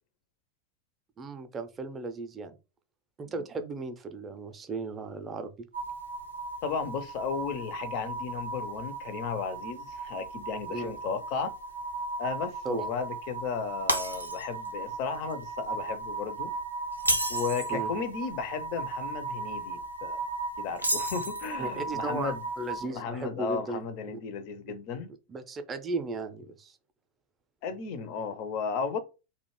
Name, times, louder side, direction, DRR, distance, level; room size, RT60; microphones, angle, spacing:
voice 1, 1.2-2.6 3.2-5.5 10.7-10.9 12.6-12.9 17.7-17.9 21.6-23.9 25.3-26.8, right 3 dB, 20° right, 0.4 m, -36 dB
sound 1, 5.7-22.9, right 4 dB, 85° left, 0.8 m, -37 dB
voice 2, 6.6-11.5 12.2-16.5 17.3-20.2 20.6-22.4 22.9-25.1 27.6-29.0, left 6 dB, 45° left, 0.4 m, -34 dB
Shatter, 13.9-14.7 15.1-15.3 16.9-17.8 20.8-21.6, right 1 dB, 85° right, 0.4 m, -30 dB
2.4 x 2.1 x 3.0 m
figure-of-eight pair, 90°, 0 cm